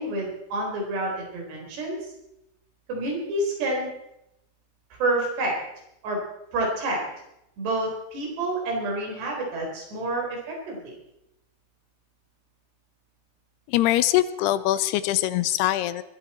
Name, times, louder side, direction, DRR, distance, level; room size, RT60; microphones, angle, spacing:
voice 1, 0.0-2.1 2.9-3.9 5.0-5.6 6.0-6.2 6.5-7.0 7.6-11.0, right 2 dB, 80° right, -1 dB, 6.2 m, -28 dB
voice 2, 13.7-16.0, left 14 dB, 80° left, 15 dB, 2.6 m, -23 dB
20.5 x 13.5 x 4.4 m, 0.85 s
omnidirectional pair, 4.7 m